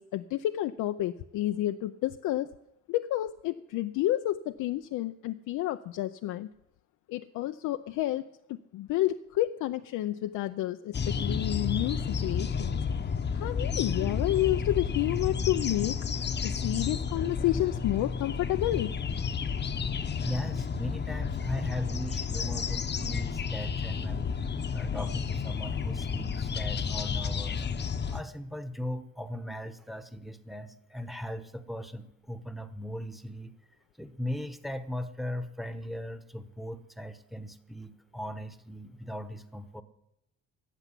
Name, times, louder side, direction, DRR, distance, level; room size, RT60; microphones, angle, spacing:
voice 1, 0.0-2.5 2.9-6.5 7.1-12.8 13.3-18.9, left 14 dB, 85° left, 7 dB, 0.6 m, -30 dB
sound 1, 10.9-28.2, left 6 dB, 35° left, 0.9 m, -31 dB
voice 2, 20.2-24.3 24.7-27.6 28.0-33.5 34.0-39.8, left 1 dB, ahead, 11 dB, 1.1 m, -38 dB
14.5 x 6.9 x 9.9 m, 0.85 s
cardioid pair, 90°, 30 cm